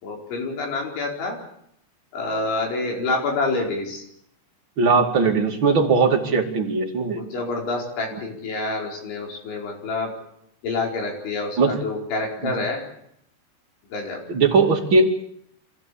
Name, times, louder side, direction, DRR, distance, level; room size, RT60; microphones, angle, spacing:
voice 1, 0.0-1.4 2.1-4.0 7.1-10.1 10.6-12.8 13.9-14.2, left 3 dB, 90° left, 0 dB, 7.2 m, -27 dB
voice 2, 4.8-7.2 8.1-8.2 11.6-11.8 12.4-12.6 14.3-15.2, right 4 dB, 35° right, 2 dB, 2.4 m, -19 dB
27.0 x 16.0 x 8.6 m, 0.74 s
omnidirectional pair, 5.2 m